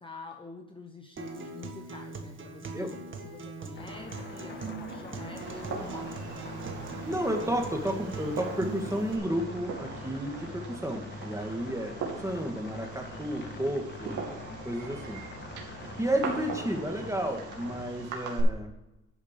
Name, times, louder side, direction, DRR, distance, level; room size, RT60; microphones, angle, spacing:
voice 1, 0.0-6.3, left 3 dB, 15° left, 4 dB, 1.0 m, -47 dB
Acoustic guitar, 1.2-9.2, right 3 dB, 40° right, 1.7 m, -41 dB
sound 1, 3.8-18.2, left 3 dB, 35° left, 1.7 m, -44 dB
Fireworks, 5.4-18.4, right 5 dB, 75° right, 2.8 m, -41 dB
voice 2, 7.0-11.9 12.2-14.2 14.6-15.2 16.0-18.7, right 1 dB, 10° right, 3 dB, 2.1 m, -32 dB
11.5 x 5.2 x 6.7 m, 0.95 s
cardioid pair, 90°, 30 cm